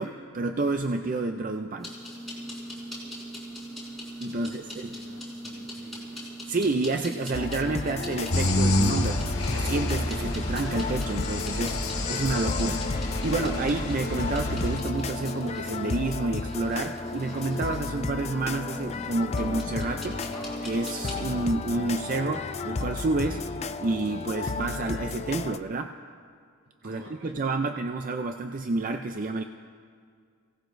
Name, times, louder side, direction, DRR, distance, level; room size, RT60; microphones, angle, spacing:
voice 1, 0.0-1.9 4.2-4.9 6.5-12.8 13.2-20.2 20.6-23.4 23.8-25.9 26.8-29.4, right 3 dB, 40° right, 6 dB, 0.4 m, -29 dB
sound 1, 1.8-21.4, equal, ahead, 4.5 m, -40 dB
voice 2, 4.2-6.2 26.8-27.3, equal, 70° right, -3 dB, 3.2 m, -50 dB
sound 2, 7.3-25.6, left 4 dB, 30° left, 0.4 m, -34 dB
sound 3, 8.3-14.8, left 1 dB, 85° left, 1.5 m, -28 dB
27.5 x 17.5 x 2.6 m, 2.1 s
head